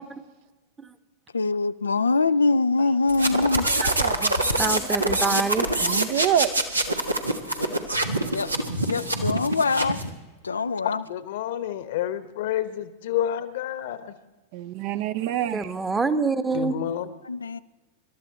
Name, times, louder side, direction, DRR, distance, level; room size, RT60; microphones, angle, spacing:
voice 1, 1.3-3.7 8.3-8.5 8.9-10.0 10.4-11.0 17.2-17.6, left 3 dB, 75° left, 12 dB, 0.4 m, -23 dB
sound 1, 3.1-10.1, right 1 dB, 85° right, 1.4 m, -25 dB
voice 2, 3.8-4.4 5.8-6.7 14.5-15.7, right 10 dB, 50° right, 12 dB, 0.8 m, -27 dB
voice 3, 4.6-5.7 15.5-16.8, right 4 dB, 15° right, 12 dB, 1.1 m, -26 dB
voice 4, 11.1-14.1 16.5-17.1, left 11 dB, 55° left, 14 dB, 1.1 m, -29 dB
26.0 x 13.0 x 4.2 m, 1.2 s
figure-of-eight pair, 90°, 0 cm